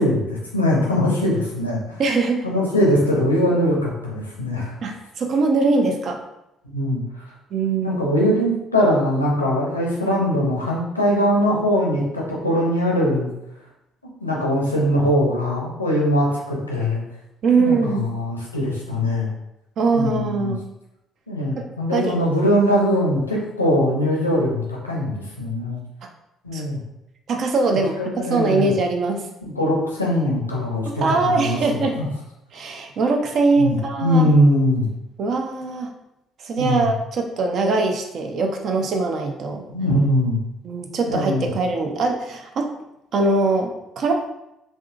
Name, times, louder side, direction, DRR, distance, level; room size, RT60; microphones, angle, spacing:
voice 1, 0.0-1.8 2.4-4.7 6.6-7.0 7.8-13.3 14.2-17.0 17.6-19.3 19.9-20.5 21.3-25.8 26.4-26.8 27.7-28.7 29.4-32.1 33.6-34.9 36.6-36.9 39.7-40.4 41.1-41.5, equal, 90° left, -3 dB, 0.5 m, -21 dB
voice 2, 2.0-2.5 4.8-6.2 7.5-8.0 17.4-18.0 19.8-20.6 21.6-22.1 26.5-26.6 27.3-27.9 28.3-29.3 30.9-32.0 32.5-34.3 35.2-35.9 36.4-39.6 40.6-42.7 43.1-44.1, right 3 dB, 50° right, 3 dB, 0.4 m, -22 dB
3.6 x 2.6 x 2.4 m, 0.88 s
figure-of-eight pair, 50°, 0 cm